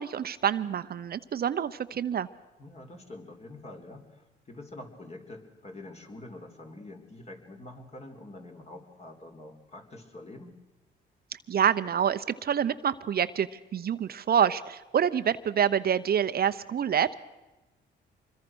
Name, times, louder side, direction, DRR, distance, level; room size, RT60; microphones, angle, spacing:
voice 1, 0.0-2.3 11.3-17.1, right 8 dB, 50° right, 11 dB, 0.8 m, -27 dB
voice 2, 2.6-10.6, left 2 dB, 30° left, 4 dB, 3.8 m, -46 dB
25.5 x 22.0 x 6.3 m, 1.1 s
cardioid pair, 90°, 20 cm